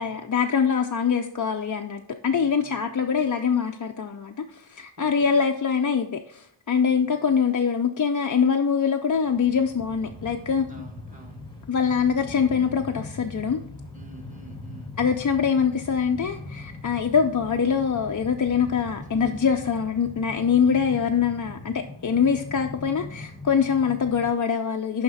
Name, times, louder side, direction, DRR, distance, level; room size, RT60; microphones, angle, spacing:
voice 1, 0.0-10.7 11.7-13.6 15.0-25.0, left 6 dB, 40° left, 4 dB, 0.4 m, -24 dB
voice 2, 2.3-3.3 5.0-5.4 6.9-7.3 10.7-11.5 13.9-15.0 19.2-19.3, right 3 dB, 15° right, 2 dB, 1.6 m, -48 dB
Train, 9.1-24.3, left 2 dB, 10° left, 1.3 m, -41 dB
10.5 x 3.6 x 4.0 m, 0.67 s
wide cardioid pair, 65°, 49 cm